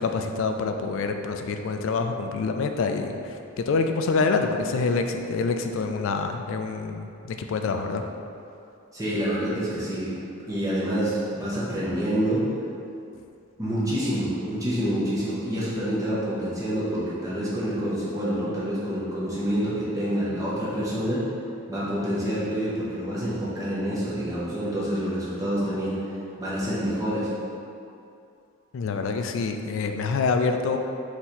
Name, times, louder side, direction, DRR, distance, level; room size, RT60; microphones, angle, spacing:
voice 1, 0.0-8.0 28.7-30.8, left 4 dB, 65° left, 6 dB, 0.3 m, -26 dB
voice 2, 8.9-10.1 10.5-12.4 13.6-21.2 21.7-26.0 26.4-27.3, equal, 15° right, -9 dB, 0.7 m, -27 dB
3.9 x 2.9 x 4.2 m, 2.6 s
head